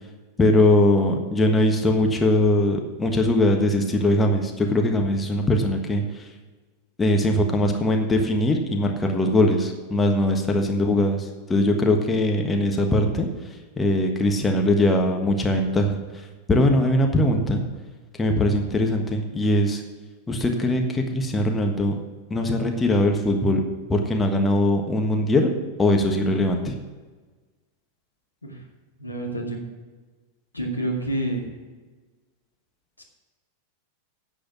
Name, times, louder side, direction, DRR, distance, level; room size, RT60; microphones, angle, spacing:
voice 1, 0.4-6.0 7.0-13.3 13.8-16.0 16.5-17.6 18.2-19.8 20.3-21.9 22.3-23.6 23.9-25.5 25.8-26.7, left 1 dB, 15° left, 3 dB, 1.4 m, -21 dB
voice 2, 29.0-29.6 30.5-31.4, right 1 dB, 85° left, 0 dB, 1.9 m, -28 dB
10.5 x 7.8 x 6.0 m, 1.3 s
figure-of-eight pair, 90°, 0 cm